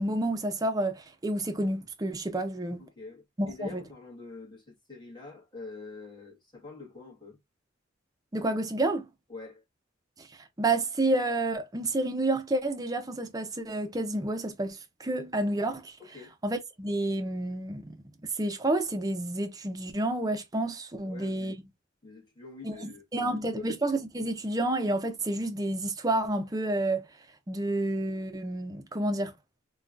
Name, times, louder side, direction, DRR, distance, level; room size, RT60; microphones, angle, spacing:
voice 1, 0.0-2.8 3.4-3.8 8.3-9.0 10.2-10.3 10.6-16.0 16.4-17.9 18.4-21.6 22.6-22.7 23.1-27.1 27.5-29.3, right 2 dB, 20° right, 0.5 m, -29 dB
voice 2, 2.8-7.4 9.3-9.6 16.0-16.3 21.0-21.5 22.0-23.8, left 3 dB, 20° left, 1.7 m, -45 dB
3.5 x 2.3 x 2.5 m
head